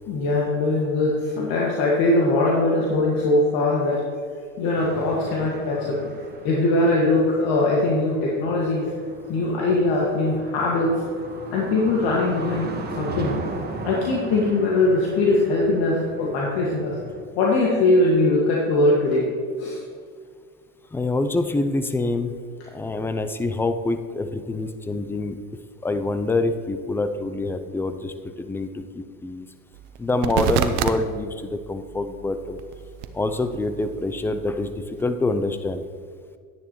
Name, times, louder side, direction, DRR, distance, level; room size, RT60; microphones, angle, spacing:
voice 1, 0.1-4.0 4.6-6.0 6.4-8.9 9.3-11.0 11.5-13.4 13.8-17.0 17.3-19.3 19.6-19.8, left 2 dB, 60° left, -3 dB, 1.9 m, -21 dB
sound 1, 4.8-17.2, right 3 dB, 25° right, 1.4 m, -38 dB
voice 2, 20.9-22.3 22.7-25.4 25.8-29.5 30.0-32.6 33.1-34.7 35.0-35.8, left 2 dB, 5° left, 9 dB, 0.4 m, -26 dB
sound 2, 29.7-31.0 31.4-35.1, right 9 dB, 65° right, 0.8 m, -30 dB
11.0 x 9.9 x 3.1 m, 2.1 s
hypercardioid pair, 95°, 42 cm